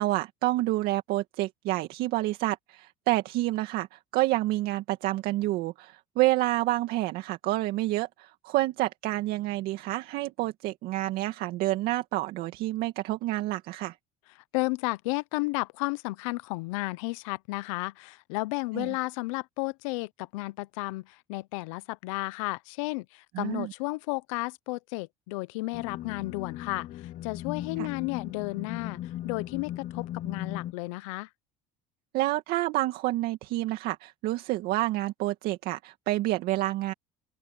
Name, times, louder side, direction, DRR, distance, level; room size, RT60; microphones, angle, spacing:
voice 1, 0.0-14.0 18.7-18.9 23.3-23.7 27.8-27.9 32.1-36.9, right 17 dB, 70° right, 2.2 m, -28 dB
voice 2, 14.5-26.9 27.2-29.0 29.2-31.3, left 24 dB, 85° left, 0.9 m, -33 dB
sound 1, 25.7-30.7, left 12 dB, 55° left, 0.9 m, -37 dB
open air
supercardioid pair, 80°, 16 cm